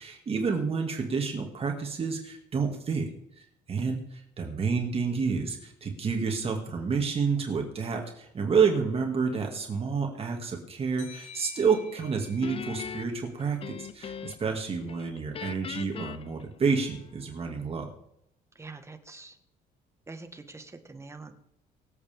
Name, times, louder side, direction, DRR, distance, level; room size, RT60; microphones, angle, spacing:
voice 1, 0.0-3.1 3.3-17.9, right 5 dB, 35° right, 2 dB, 2.4 m, -29 dB
sound 1, 11.0-14.3, left 5 dB, 65° left, 6.8 m, -51 dB
Guitar, 12.4-14.6 14.9-17.2, left 7 dB, 35° left, 0.6 m, -40 dB
voice 2, 18.6-19.4 20.1-21.3, right 3 dB, 15° right, 7 dB, 1.7 m, -45 dB
24.0 x 8.2 x 3.7 m, 0.75 s
cardioid pair, 110°, 17 cm